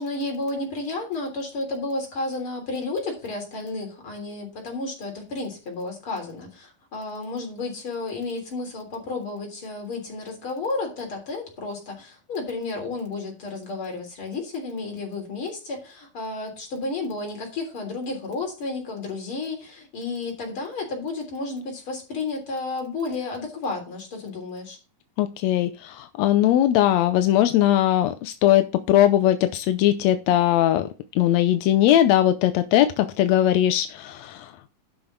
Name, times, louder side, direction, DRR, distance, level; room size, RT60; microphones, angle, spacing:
voice 1, 0.0-24.8, left 3 dB, 40° left, 2 dB, 4.1 m, -32 dB
voice 2, 25.2-30.9 31.2-34.7, left 12 dB, 75° left, 9 dB, 1.6 m, -20 dB
11.5 x 6.8 x 3.9 m, 0.32 s
omnidirectional pair, 3.7 m